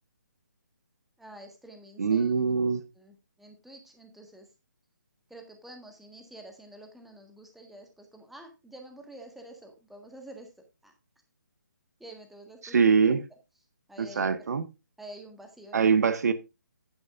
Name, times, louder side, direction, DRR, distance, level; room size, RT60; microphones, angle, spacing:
voice 1, 1.2-2.3 3.0-4.5 5.3-10.5 10.8-10.9 12.0-12.8 13.9-14.5 15.0-15.9, right 1 dB, ahead, 1.6 m, -48 dB
voice 2, 2.0-2.8 12.6-13.3 14.0-14.7 15.7-16.3, right 5 dB, 60° right, 1.0 m, -23 dB
10.5 x 10.0 x 2.5 m
figure-of-eight pair, 145°, 10 cm